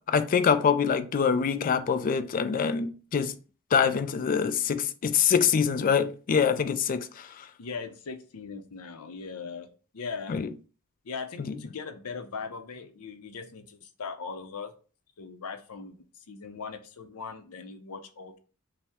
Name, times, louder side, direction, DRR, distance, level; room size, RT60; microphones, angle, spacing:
voice 1, 0.1-3.4 3.7-7.5 10.3-10.5 11.4-11.6, left 6 dB, 40° left, 0.3 m, -25 dB
voice 2, 7.6-9.7 9.9-10.4 11.0-14.7 15.2-18.4, left 5 dB, 75° left, 0.6 m, -39 dB
5.4 x 2.1 x 3.5 m
head